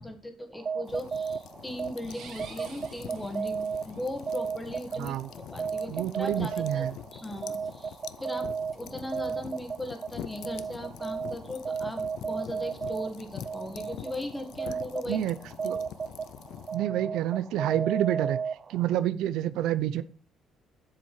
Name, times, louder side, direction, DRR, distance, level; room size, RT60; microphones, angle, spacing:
voice 1, 0.0-6.9 7.1-15.2 15.6-15.7, left 1 dB, 10° left, 5 dB, 1.7 m, -38 dB
sound 1, 0.5-19.0, right 6 dB, 35° right, 0.5 m, -35 dB
sound 2, 0.9-16.8, left 11 dB, 75° left, 0.5 m, -45 dB
sound 3, 2.0-4.0, right 5 dB, 70° right, 2.4 m, -49 dB
voice 2, 5.0-5.3 5.9-6.9 15.1-15.4 15.6-15.8 16.7-18.4 18.7-20.0, right 12 dB, 85° right, 13 dB, 0.5 m, -28 dB
7.6 x 7.1 x 4.7 m, 0.37 s
cardioid pair, 130°, 0 cm